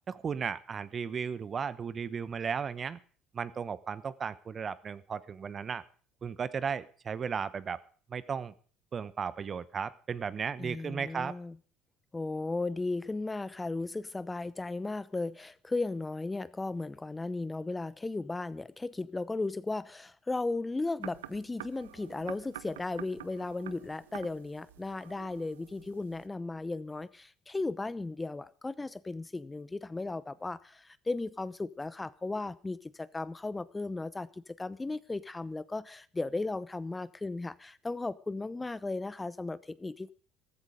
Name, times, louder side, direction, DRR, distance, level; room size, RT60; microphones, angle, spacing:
voice 1, 0.1-3.0 3.3-5.8 6.2-7.8 8.1-8.5 8.9-11.4, right 6 dB, 40° right, 1.0 m, -35 dB
voice 2, 10.6-11.6 12.1-40.1, left 3 dB, 20° left, 0.8 m, -36 dB
sound 1, 21.0-26.3, right 13 dB, 85° right, 0.6 m, -48 dB
14.0 x 14.0 x 5.0 m
hypercardioid pair, 65°, 0 cm